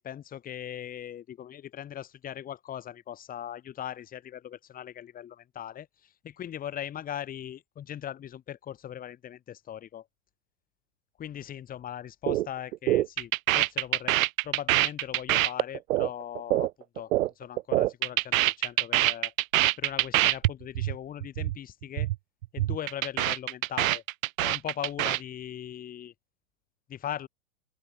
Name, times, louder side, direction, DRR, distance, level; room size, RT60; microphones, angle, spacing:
voice 1, 0.0-10.1 11.2-14.2 14.4-19.3 19.8-22.1 22.5-24.0 24.4-26.1 26.9-27.3, left 10 dB, 20° left, 2.1 m, -39 dB
sound 1, 12.3-12.5 12.7-17.3 17.6-20.5 20.8-21.0 21.2-21.6 21.8-22.2 22.4-25.2, right 16 dB, 75° right, 0.6 m, -25 dB
open air
hypercardioid pair, 130°, 41 cm